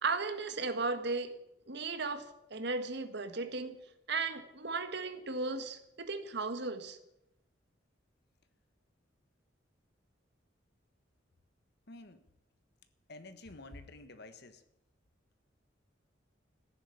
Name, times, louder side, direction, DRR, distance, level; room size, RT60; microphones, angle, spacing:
voice 1, 0.0-1.3 1.7-3.8 4.1-7.0, right 3 dB, 65° right, 9 dB, 1.6 m, -35 dB
voice 2, 11.9-12.2 13.1-14.6, left 2 dB, 60° left, 11 dB, 1.4 m, -50 dB
15.0 x 10.5 x 8.5 m, 0.84 s
head